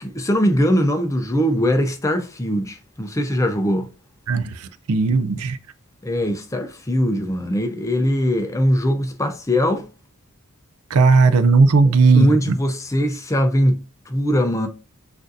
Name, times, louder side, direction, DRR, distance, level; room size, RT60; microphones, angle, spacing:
voice 1, 0.0-3.9 6.0-9.9 11.8-14.7, equal, 15° left, 0.4 m, -21 dB
voice 2, 4.9-5.6 10.9-12.3, right 4 dB, 80° right, 0.4 m, -15 dB
6.3 x 2.6 x 2.6 m
head